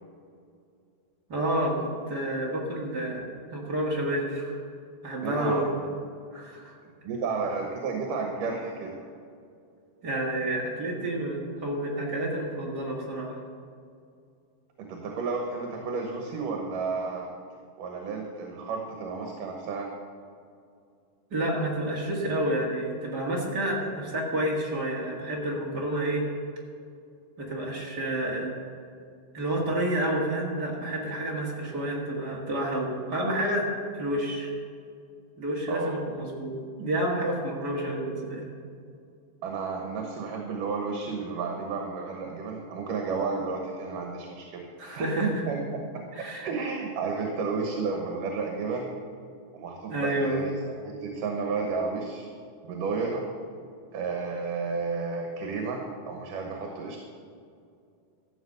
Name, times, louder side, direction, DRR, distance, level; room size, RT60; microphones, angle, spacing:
voice 1, 1.3-3.2 3.5-4.6 5.0-5.7 6.3-6.7 10.0-13.4 21.3-26.2 27.5-28.5 29.3-33.7 33.9-34.5 35.4-36.5 36.8-38.5 44.8-45.4 46.1-46.5 49.9-50.4, right 1 dB, 35° right, -2 dB, 2.0 m, -29 dB
voice 2, 5.2-5.9 7.0-8.9 14.8-17.3 17.8-19.9 35.7-35.9 39.4-44.6 44.9-45.6 46.2-48.9 49.5-50.6 50.8-52.3 52.6-53.2 53.9-57.0, right 4 dB, 80° right, 1 dB, 2.7 m, -32 dB
14.0 x 7.8 x 6.7 m, 2.4 s
omnidirectional pair, 3.7 m